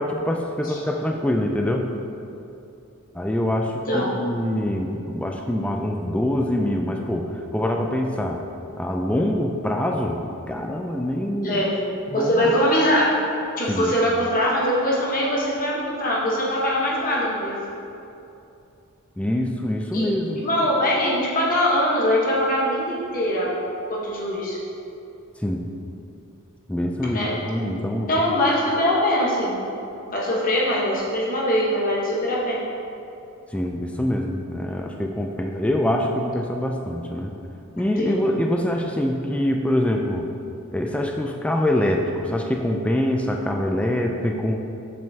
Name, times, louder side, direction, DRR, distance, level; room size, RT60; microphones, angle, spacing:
voice 1, 0.0-1.9 3.1-8.4 8.8-10.2 10.5-11.6 12.1-12.5 13.7-14.0 19.2-20.4 25.4-25.7 26.7-28.1 33.5-37.3 37.8-40.3 40.7-44.6, left 1 dB, 5° left, 2 dB, 0.3 m, -24 dB
voice 2, 11.4-11.8 12.1-13.2 13.6-17.6 19.9-20.1 20.4-23.5 23.9-24.6 27.1-27.3 28.0-29.7 30.1-32.6 38.0-38.2, equal, 40° left, -5 dB, 1.1 m, -22 dB
7.5 x 7.5 x 2.8 m, 2.7 s
head